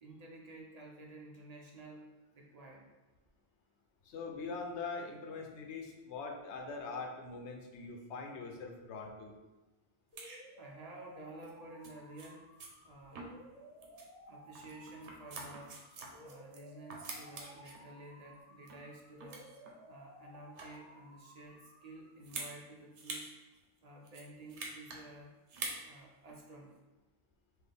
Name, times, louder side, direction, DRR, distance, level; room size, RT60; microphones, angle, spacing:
voice 1, 0.0-2.9 10.6-12.5 12.8-13.4 14.3-15.9 16.2-19.5 19.9-23.3 23.8-25.3 25.8-26.8, right 2 dB, 45° right, -1 dB, 0.6 m, -52 dB
voice 2, 4.0-9.3, left 4 dB, 90° left, 3 dB, 0.9 m, -42 dB
sound 1, 10.1-22.1, equal, 10° left, 0.8 m, -57 dB
sound 2, 10.2-10.4 11.4-11.5 11.8-11.9 12.2-12.3 12.6-12.7 13.1-13.5 13.8-14.1 14.5-16.6 16.9-17.8 18.3-18.9 19.2-19.7 20.3-20.9 22.2-22.5 22.9-23.3 23.5-23.6 24.0-25.0 25.5-25.8 26.3-26.4, right 3 dB, 90° right, 1.0 m, -45 dB
4.1 x 2.5 x 3.4 m, 1.2 s
omnidirectional pair, 1.1 m